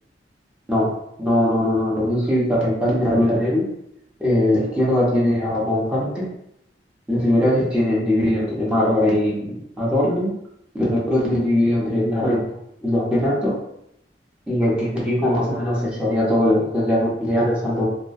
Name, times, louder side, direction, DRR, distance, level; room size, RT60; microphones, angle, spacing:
voice 1, 1.2-3.7 4.2-6.3 7.1-10.3 10.8-12.4 12.8-13.5 14.5-17.9, left 1 dB, 5° right, -7 dB, 0.6 m, -20 dB
2.2 x 2.2 x 2.5 m, 0.77 s
head